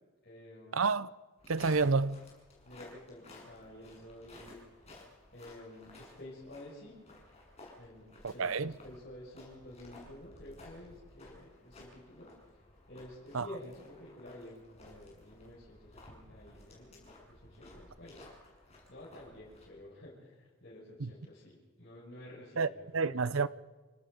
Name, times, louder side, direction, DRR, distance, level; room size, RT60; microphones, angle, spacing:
voice 1, 0.2-0.8 2.6-4.6 5.3-7.0 7.8-12.3 12.9-18.2 18.9-23.2, left 1 dB, 50° left, 6.8 m, -51 dB
voice 2, 0.7-1.1 1.5-2.2 8.2-8.7 13.3-13.4 22.6-22.7 22.9-23.5, right 4 dB, 80° right, 0.7 m, -29 dB
sound 1, 1.4-19.7, left 2 dB, 30° left, 6.6 m, -56 dB
28.5 x 18.0 x 5.2 m
head